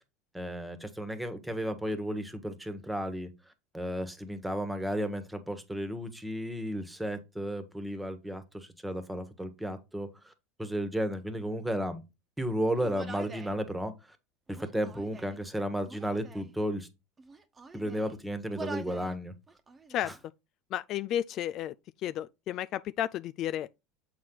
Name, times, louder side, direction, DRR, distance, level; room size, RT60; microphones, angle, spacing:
voice 1, 0.3-10.3 10.6-12.0 12.4-14.2 14.5-16.9 17.7-19.4 20.0-20.2, equal, 5° right, 1.5 m, -34 dB
Human voice, 12.8-13.6 14.5-15.4 15.8-16.5 17.2-18.1 18.5-19.1 19.5-20.1, right 4 dB, 25° right, 1.1 m, -45 dB
voice 2, 20.7-21.7 22.0-23.7, left 11 dB, 50° left, 0.3 m, -32 dB
7.4 x 4.4 x 3.9 m
hypercardioid pair, 90°, 0 cm